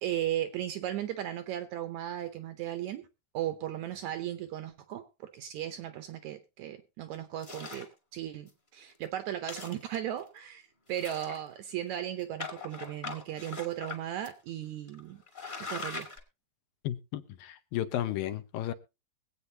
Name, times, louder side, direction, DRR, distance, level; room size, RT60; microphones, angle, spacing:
voice 1, 0.0-3.1 3.3-15.2 15.6-16.1, right 12 dB, 75° right, 1.8 m, -36 dB
sound 1, 7.4-7.9 8.5-8.6 8.9-9.0 9.4-10.2 10.9-11.7 12.4-14.0 14.2-14.3 14.9-15.0 15.3-16.2, left 3 dB, 25° left, 1.2 m, -41 dB
voice 2, 16.8-18.7, left 12 dB, 85° left, 2.6 m, -33 dB
22.5 x 8.3 x 2.8 m
omnidirectional pair, 4.0 m